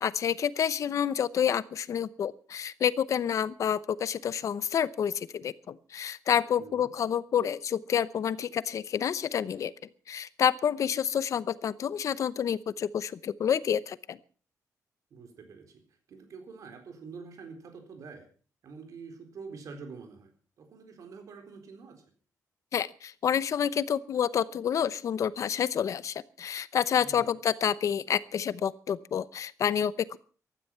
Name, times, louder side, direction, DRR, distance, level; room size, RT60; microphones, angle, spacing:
voice 1, 0.0-9.7 10.1-14.2 22.7-30.2, left 8 dB, 55° left, 17 dB, 0.8 m, -29 dB
voice 2, 6.6-6.9 15.1-15.8 16.1-18.3 18.6-20.3 20.6-22.0 27.0-27.3, right 4 dB, 60° right, 6 dB, 4.2 m, -46 dB
15.5 x 13.0 x 5.7 m, 0.41 s
wide cardioid pair, 160°, 6 cm